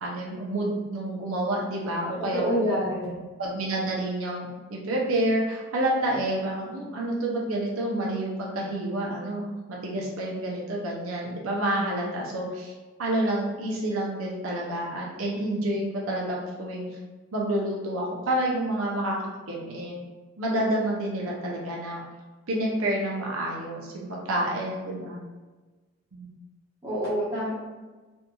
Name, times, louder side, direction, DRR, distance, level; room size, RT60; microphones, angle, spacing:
voice 1, 0.0-2.9 3.4-12.7 13.0-16.9 17.3-20.0 20.4-22.0 22.5-25.2 26.1-26.3, right 1 dB, 85° right, -3 dB, 0.6 m, -29 dB
voice 2, 2.2-3.3 26.8-27.5, equal, 15° right, -10 dB, 0.9 m, -27 dB
2.8 x 2.6 x 2.2 m, 1.3 s
head